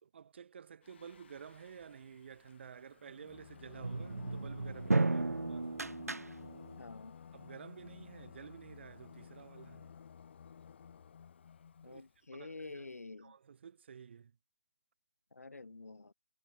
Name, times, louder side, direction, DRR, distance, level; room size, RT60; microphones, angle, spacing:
voice 1, 0.0-5.8 7.3-9.9 11.8-12.1 12.3-12.9 13.2-14.4, right 7 dB, 45° right, 2.6 m, -52 dB
Singing, 0.8-12.2, left 7 dB, 45° left, 2.4 m, -54 dB
sound 1, 3.8-6.8, right 3 dB, 90° right, 0.6 m, -34 dB
voice 2, 6.8-7.2 11.8-13.3 15.3-16.1, left 3 dB, 75° left, 2.8 m, -48 dB
figure-of-eight pair, 150°, 8 cm